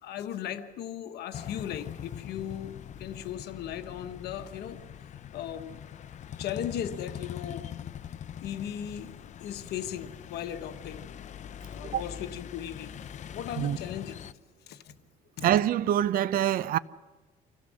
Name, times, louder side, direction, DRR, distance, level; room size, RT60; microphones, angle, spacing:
voice 1, 0.0-4.8 5.3-5.8 6.4-7.9 8.4-11.0 11.7-12.9 13.3-14.2 14.7-14.9 15.4-15.5, left 10 dB, 75° left, 1.3 m, -37 dB
sound 1, 1.3-14.3, left 9 dB, 45° left, 0.7 m, -42 dB
voice 2, 15.4-16.8, right 11 dB, 60° right, 0.6 m, -25 dB
25.5 x 16.0 x 6.4 m
cardioid pair, 110°, 17 cm